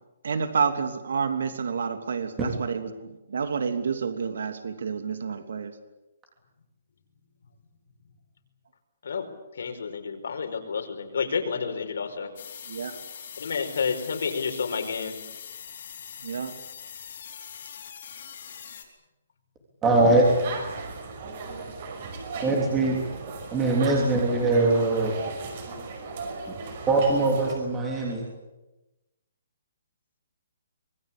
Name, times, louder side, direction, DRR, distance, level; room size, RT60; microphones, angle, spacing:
voice 1, 0.2-5.7 12.7-12.9 16.2-16.5, right 6 dB, 60° right, 8 dB, 3.1 m, -29 dB
voice 2, 9.0-12.3 13.4-15.2, left 5 dB, 60° left, 5 dB, 5.1 m, -30 dB
sound 1, 12.4-18.8, left 8 dB, 40° left, 4.6 m, -42 dB
voice 3, 19.8-20.2 22.4-23.0 23.5-25.1 26.9-28.2, right 2 dB, 10° right, -2 dB, 3.2 m, -22 dB
sound 2, 20.2-27.5, right 4 dB, 35° right, 5.8 m, -37 dB
25.5 x 21.5 x 8.7 m, 1.0 s
hypercardioid pair, 180°, 0 cm